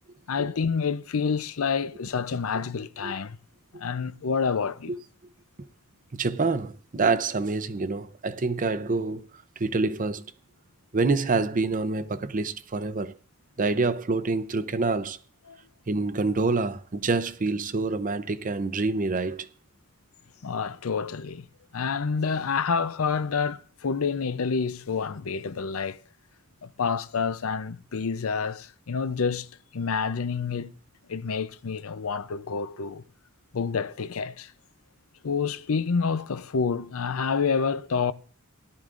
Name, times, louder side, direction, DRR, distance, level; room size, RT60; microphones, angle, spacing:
voice 1, 0.3-3.4 3.8-4.9 15.5-15.6 20.4-21.4 21.7-26.0 26.6-29.5 29.7-30.7 31.1-33.0 33.5-34.5 35.2-38.1, left 5 dB, 80° left, 0.6 m, -28 dB
voice 2, 6.1-9.2 9.6-10.2 10.9-13.1 13.6-15.2 15.9-19.5, right 3 dB, 40° right, 0.6 m, -26 dB
18.0 x 12.0 x 2.5 m
head